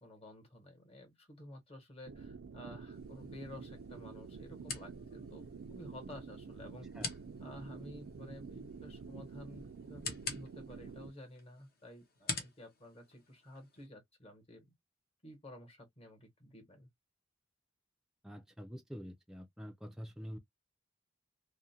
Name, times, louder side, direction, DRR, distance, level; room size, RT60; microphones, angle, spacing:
voice 1, 0.0-6.9 7.4-14.7 15.2-16.9, left 1 dB, 30° left, 1.1 m, -52 dB
sound 1, 2.1-11.1, right 5 dB, 85° right, 0.4 m, -49 dB
sound 2, 2.9-13.9, left 4 dB, 55° left, 0.9 m, -47 dB
voice 2, 18.2-20.4, equal, 5° right, 0.3 m, -46 dB
2.4 x 2.1 x 2.7 m
head